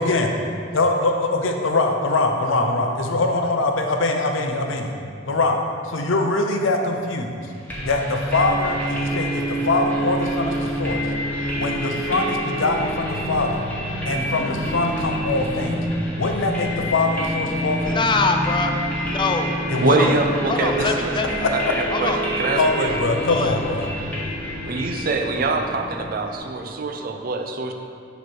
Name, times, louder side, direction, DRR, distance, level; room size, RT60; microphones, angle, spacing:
voice 1, 0.0-0.3 0.7-4.9 5.3-7.4 7.8-11.1 11.6-13.7 14.0-15.8 16.2-18.0 19.7-20.1 20.8-20.9 22.6-23.9, left 2 dB, 80° left, 3 dB, 0.6 m, -23 dB
sound 1, 7.7-26.4, equal, 10° left, 1.2 m, -27 dB
voice 2, 17.9-18.8 19.0-19.6 20.0-20.1 20.5-21.3 21.9-22.2 23.3-23.6, left 3 dB, 25° left, 4 dB, 0.4 m, -23 dB
voice 3, 19.8-21.1 21.5-22.1 22.4-22.9 24.7-27.7, right 3 dB, 50° right, 4 dB, 0.5 m, -24 dB
6.9 x 3.1 x 6.0 m, 2.4 s
head